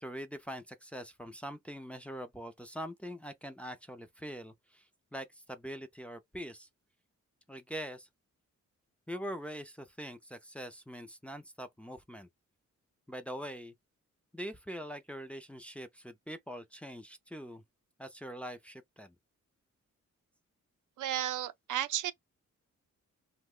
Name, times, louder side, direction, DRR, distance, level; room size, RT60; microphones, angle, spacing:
voice 1, 0.0-4.9 5.1-6.7 7.5-8.1 9.1-12.3 13.1-13.7 14.3-17.6 18.0-19.1, equal, 5° left, 0.4 m, -43 dB
voice 2, 21.0-22.1, right 12 dB, 90° right, 0.5 m, -33 dB
2.6 x 2.2 x 3.6 m
wide cardioid pair, 145°, 30 cm